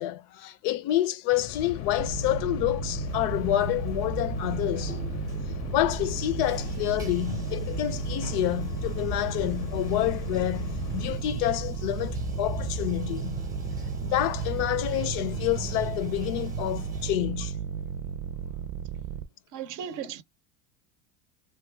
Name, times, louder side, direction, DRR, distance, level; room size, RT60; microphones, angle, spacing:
voice 1, 0.0-5.0 5.7-13.5 14.0-17.5, left 14 dB, 85° left, 0.6 m, -28 dB
sound 1, 1.3-11.1, left 9 dB, 40° left, 0.5 m, -38 dB
sound 2, 2.0-19.3, right 8 dB, 85° right, 0.6 m, -34 dB
Bathtub (filling or washing), 3.1-17.1, right 1 dB, 10° right, 0.7 m, -39 dB
voice 2, 19.5-20.2, right 8 dB, 45° right, 0.5 m, -36 dB
2.7 x 2.3 x 3.3 m
cardioid pair, 140°, 45 cm